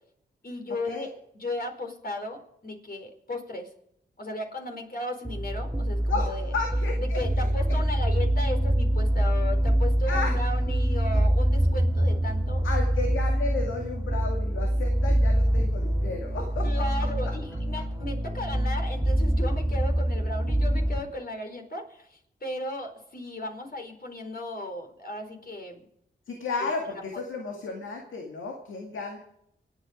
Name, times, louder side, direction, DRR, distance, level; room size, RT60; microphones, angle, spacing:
voice 1, 0.4-3.7 4.2-6.5 7.0-12.6 16.6-25.9 26.6-26.7 27.1-27.2, left 1 dB, 50° left, 3 dB, 4.4 m, -36 dB
sound 1, 5.2-21.0, right 1 dB, 15° right, 2.8 m, -25 dB
voice 2, 6.1-7.2 10.1-10.4 12.6-16.7 17.0-17.1 26.3-29.2, left 4 dB, 85° left, 1 dB, 2.2 m, -33 dB
25.5 x 9.3 x 5.0 m, 0.75 s
cardioid pair, 45°, 20 cm